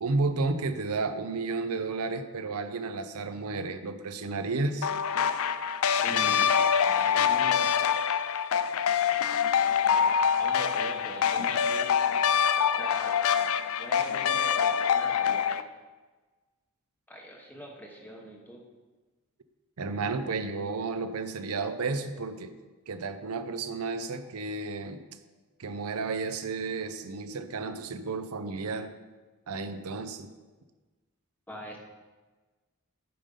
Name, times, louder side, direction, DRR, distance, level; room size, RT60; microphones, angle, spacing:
voice 1, 0.0-4.9 19.8-22.5 22.9-25.0 25.6-28.9 29.5-30.3, right 3 dB, 80° right, 9 dB, 0.6 m, -32 dB
sound 1, 4.8-15.6, left 7 dB, 70° left, 0.4 m, -25 dB
voice 2, 6.0-7.8 9.8-11.9 12.7-13.2 13.8-15.7 17.1-18.6 31.5-31.8, equal, 10° left, 0 dB, 1.1 m, -43 dB
8.7 x 5.4 x 5.3 m, 1.3 s
head